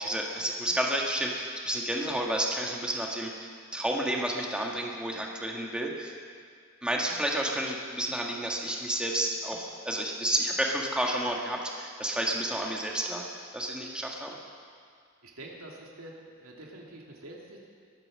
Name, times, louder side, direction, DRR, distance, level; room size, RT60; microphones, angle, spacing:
voice 1, 0.0-6.1 6.8-13.2 13.5-14.4, right 1 dB, 5° right, -1 dB, 1.6 m, -31 dB
voice 2, 15.2-17.7, right 1 dB, 85° right, -1 dB, 2.7 m, -46 dB
22.0 x 9.1 x 6.4 m, 2.1 s
head